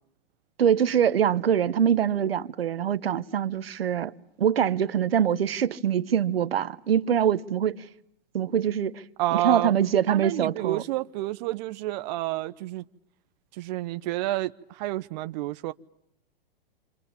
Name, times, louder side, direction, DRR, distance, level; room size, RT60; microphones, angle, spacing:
voice 1, 0.6-4.1 4.4-7.9 8.3-9.0 9.3-10.8, right 8 dB, 85° right, 1.3 m, -24 dB
voice 2, 9.2-9.7 10.1-12.8 13.5-15.7, right 16 dB, 50° right, 1.0 m, -29 dB
29.5 x 26.0 x 7.2 m
hypercardioid pair, 125°, 29 cm